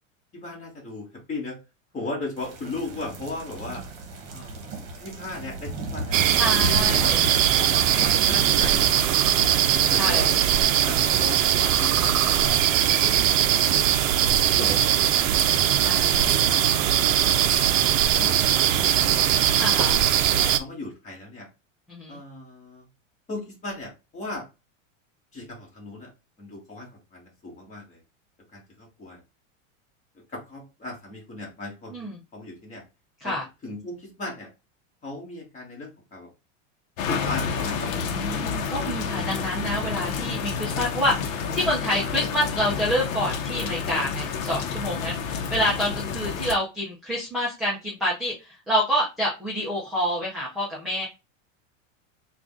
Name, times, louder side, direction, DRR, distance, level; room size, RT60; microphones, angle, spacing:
voice 1, 0.3-1.6 1.9-3.8 4.3-4.7 5.0-6.2 6.5-8.9 9.9-10.4 10.9-14.0 14.5-14.9 15.4-15.7 16.2-16.8 18.1-18.5 19.0-19.5 20.3-21.5 22.1-22.9 23.3-24.4 25.3-26.1 26.4-28.0 28.5-29.2 30.3-32.8 33.2-33.3 33.6-34.5 35.0-36.3 37.1-38.1, left 2 dB, 20° left, -2 dB, 1.4 m, -37 dB
sound 1, 2.4-8.8, right 2 dB, 40° right, 1.1 m, -35 dB
sound 2, 6.1-20.6, right 10 dB, 75° right, 0.6 m, -20 dB
voice 2, 6.3-7.2 7.9-8.4 10.0-10.3 14.5-14.8 15.8-16.4 19.6-20.0 21.9-22.2 31.9-32.2 33.2-33.4 37.8-51.1, equal, ahead, -6 dB, 0.4 m, -28 dB
sound 3, 37.0-46.6, left 6 dB, 80° left, 0.8 m, -29 dB
3.7 x 2.4 x 3.6 m, 0.26 s
supercardioid pair, 155°, 39 cm